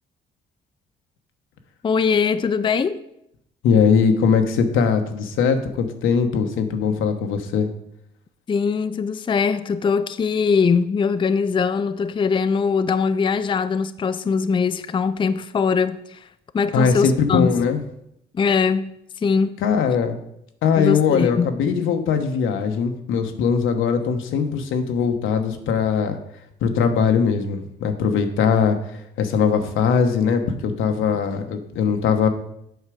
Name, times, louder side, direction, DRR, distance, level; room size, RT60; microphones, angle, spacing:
voice 1, 1.8-3.0 8.5-16.3 16.5-17.5 18.3-19.6 20.8-21.5, left 5 dB, 25° left, 0.4 m, -21 dB
voice 2, 3.6-7.7 16.7-17.8 19.6-20.2 20.6-26.2 26.6-32.3, left 6 dB, 85° left, 1.0 m, -20 dB
8.1 x 5.7 x 5.0 m
cardioid pair, 90°, 20 cm